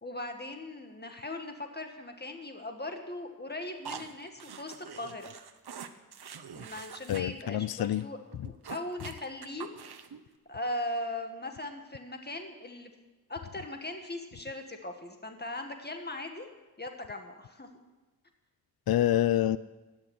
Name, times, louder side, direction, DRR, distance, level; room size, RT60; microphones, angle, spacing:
voice 1, 0.0-5.3 6.5-8.2 8.7-9.7 10.5-12.9 13.3-16.5 16.8-17.7, left 1 dB, 25° left, 4 dB, 1.8 m, -39 dB
sound 1, 3.8-7.2 7.5-7.6 7.9-8.0 8.3-10.2, right 7 dB, 85° right, 1.0 m, -45 dB
voice 2, 7.1-8.0 18.9-19.6, left 12 dB, 70° left, 16 dB, 0.5 m, -26 dB
16.5 x 6.5 x 10.0 m, 1.2 s
wide cardioid pair, 95°, 37 cm